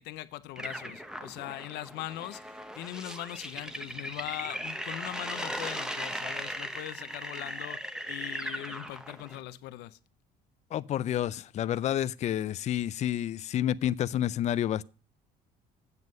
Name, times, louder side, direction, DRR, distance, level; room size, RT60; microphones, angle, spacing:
voice 1, 0.0-10.0, left 15 dB, 85° left, 0.6 m, -41 dB
sound 1, 0.6-9.4, equal, 5° right, 0.8 m, -38 dB
voice 2, 10.7-14.8, left 11 dB, 40° left, 0.4 m, -29 dB
8.1 x 7.3 x 5.2 m
cardioid pair, 110°, 17 cm